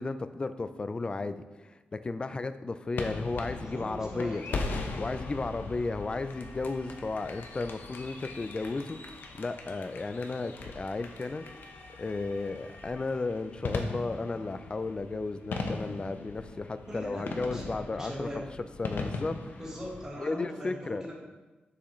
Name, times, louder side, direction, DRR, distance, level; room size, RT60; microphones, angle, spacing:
voice 1, 0.0-4.4 5.0-11.5 12.0-19.6 20.2-21.1, left 3 dB, 30° left, 11 dB, 0.4 m, -34 dB
sound 1, 3.0-20.1, left 3 dB, 80° left, 0.8 m, -39 dB
voice 2, 3.6-4.7 16.8-18.4 19.6-21.1, equal, 15° right, -5 dB, 1.5 m, -40 dB
7.4 x 6.9 x 3.1 m, 1.2 s
wide cardioid pair, 125°, 3 cm